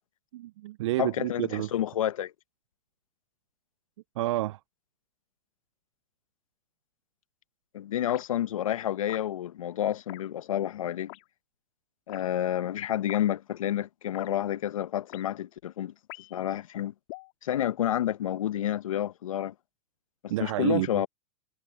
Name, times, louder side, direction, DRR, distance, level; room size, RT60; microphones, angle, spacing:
voice 1, 0.3-1.7 4.2-4.6 20.3-20.9, right 16 dB, 65° right, 0.7 m, -29 dB
voice 2, 1.0-2.3 7.7-11.1 12.1-15.9 16.3-16.9 17.4-19.5 20.2-21.1, left 11 dB, 80° left, 1.1 m, -29 dB
sound 1, 8.1-8.3 9.1-9.3 10.1-10.2 11.1-11.3 12.1-12.2 13.1-13.2 14.1-14.3 15.1-15.2 16.1-16.4 17.1-17.3, left 30 dB, 50° left, 3.2 m, -44 dB
hypercardioid pair, 120°, 17 cm